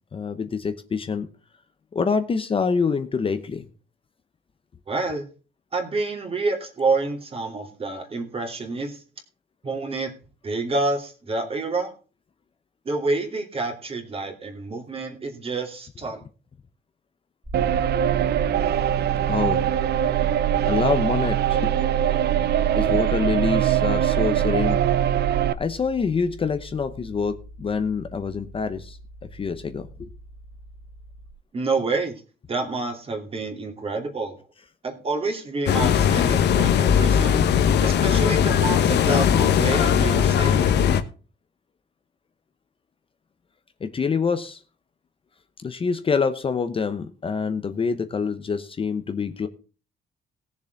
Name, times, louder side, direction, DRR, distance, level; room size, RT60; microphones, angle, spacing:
voice 1, 0.1-1.3 1.9-3.7 19.3-19.6 20.6-21.7 22.8-24.8 25.6-29.0 29.3-30.1 43.8-44.6 45.6-49.5, left 5 dB, 30° left, 9 dB, 0.9 m, -26 dB
voice 2, 4.9-5.3 5.7-9.0 9.6-10.1 10.4-11.9 12.8-16.2 31.5-32.1 32.5-34.4 34.8-37.5 37.8-40.7, right 3 dB, 30° right, 4 dB, 2.7 m, -28 dB
sound 1, 17.4-31.3, right 1 dB, ahead, 1.8 m, -40 dB
sound 2, 17.5-25.5, right 10 dB, 60° right, 0.6 m, -22 dB
sound 3, 35.7-41.0, left 8 dB, 65° left, 1.2 m, -19 dB
18.5 x 7.1 x 3.9 m, 0.36 s
cardioid pair, 135°, 19 cm